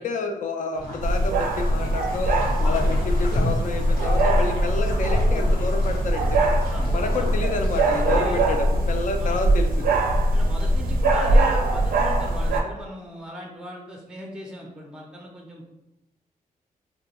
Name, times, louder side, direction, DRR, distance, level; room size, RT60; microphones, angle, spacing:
voice 1, 0.0-2.3 2.6-6.2 6.9-9.9, left 3 dB, 60° left, 5 dB, 0.4 m, -29 dB
sound 1, 0.7-8.2, left 1 dB, 90° left, 0.7 m, -34 dB
sound 2, 1.0-12.6, right 1 dB, 75° right, 0.4 m, -21 dB
voice 2, 10.3-15.7, equal, 5° right, 0 dB, 0.4 m, -38 dB
2.3 x 2.1 x 2.8 m, 0.92 s
cardioid pair, 85°, 15 cm